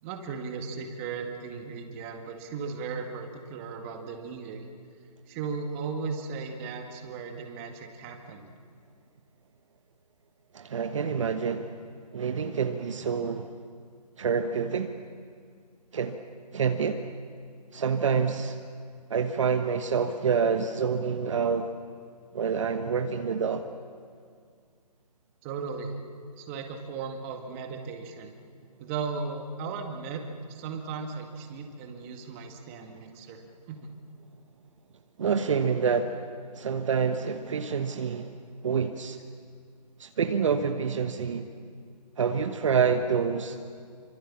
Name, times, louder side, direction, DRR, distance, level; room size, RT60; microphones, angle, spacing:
voice 1, 0.0-4.7 5.3-8.5 25.4-26.0 26.4-28.3 28.8-30.2 30.5-33.4 33.7-33.9, right 5 dB, 20° right, 4 dB, 2.0 m, -36 dB
voice 2, 10.5-11.7 12.1-13.5 14.2-15.0 15.9-16.2 16.5-17.1 17.7-18.6 19.1-21.7 22.3-23.7 35.2-36.2 36.5-38.4 38.6-39.2 40.0-41.5 42.2-43.6, right 6 dB, 45° right, 6 dB, 1.2 m, -27 dB
27.5 x 25.0 x 7.4 m, 2.2 s
figure-of-eight pair, 155°, 21 cm